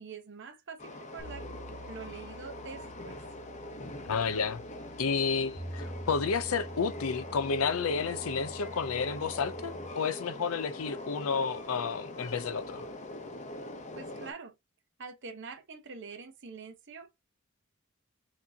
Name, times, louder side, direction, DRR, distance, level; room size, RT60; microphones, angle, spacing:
voice 1, 0.0-1.5 1.9-3.2 14.0-14.5 15.0-17.2, right 5 dB, 55° right, 0.9 m, -45 dB
Train, 0.8-14.3, left 1 dB, 35° left, 0.7 m, -43 dB
sound 1, 1.2-9.9, right 1 dB, ahead, 1.2 m, -46 dB
voice 2, 4.0-4.6 5.0-12.9, left 5 dB, 75° left, 0.5 m, -31 dB
5.9 x 2.8 x 2.7 m
head